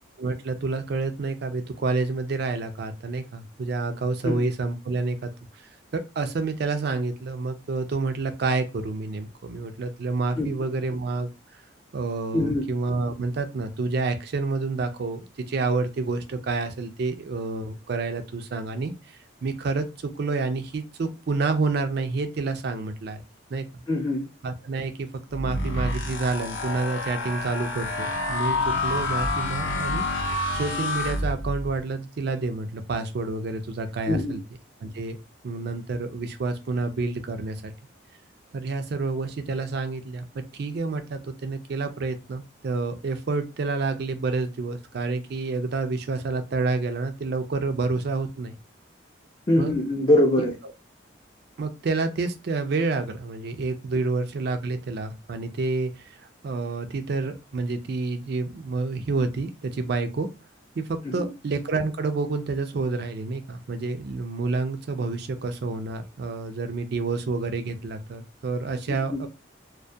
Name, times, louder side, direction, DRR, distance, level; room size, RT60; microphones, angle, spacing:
voice 1, 0.2-5.3 5.9-11.3 11.9-23.2 23.5-23.8 24.4-30.0 30.5-34.4 34.8-35.2 35.4-37.7 38.5-48.5 49.6-49.8 51.6-56.1 56.4-60.3 60.8-69.3, right 3 dB, 55° right, 8 dB, 0.4 m, -29 dB
voice 2, 12.3-12.6 23.9-24.3 34.1-34.3 49.5-50.5 61.2-61.3 68.9-69.2, left 1 dB, 25° left, -4 dB, 0.4 m, -23 dB
sound 1, 25.3-31.8, left 2 dB, 80° left, 0.6 m, -28 dB
2.2 x 2.1 x 2.6 m, 0.28 s
head